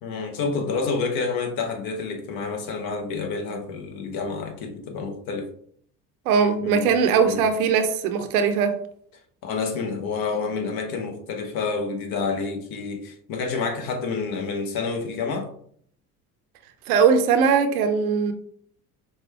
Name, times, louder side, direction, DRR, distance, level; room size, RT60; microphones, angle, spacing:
voice 1, 0.0-5.5 6.6-6.9 7.2-7.4 9.4-15.5, left 4 dB, 55° left, 1.0 m, -28 dB
voice 2, 6.3-8.7 16.9-18.3, right 6 dB, 80° right, 0.7 m, -20 dB
5.2 x 2.2 x 3.4 m
hypercardioid pair, 65°, 43 cm